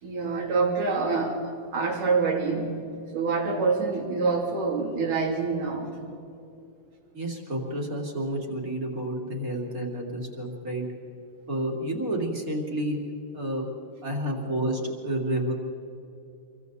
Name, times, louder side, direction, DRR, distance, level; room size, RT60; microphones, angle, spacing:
voice 1, 0.0-2.7 3.1-6.0, right 4 dB, 65° right, 0 dB, 4.5 m, -26 dB
voice 2, 7.1-10.8 11.5-13.0 13.3-13.6 14.0-15.5, right 1 dB, 25° right, 0 dB, 3.0 m, -30 dB
27.5 x 23.5 x 4.1 m, 2.7 s
omnidirectional pair, 4.1 m